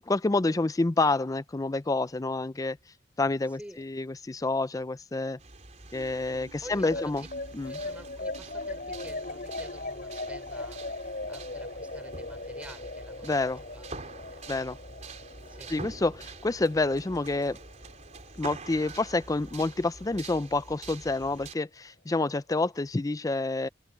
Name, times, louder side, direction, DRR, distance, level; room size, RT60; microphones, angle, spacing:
voice 1, 0.0-2.8 3.2-5.4 5.9-7.2 7.5-7.8 13.2-13.6 14.5-14.8 15.7-17.6 18.4-23.7, left 2 dB, 20° left, 0.5 m, -28 dB
voice 2, 3.5-3.8 6.5-7.3 7.6-14.5 15.4-15.7, right 1 dB, 10° right, 5.0 m, -49 dB
sound 1, 5.4-21.5, right 3 dB, 40° right, 4.1 m, -46 dB
sound 2, 5.9-18.5, left 2 dB, 55° left, 6.4 m, -39 dB
head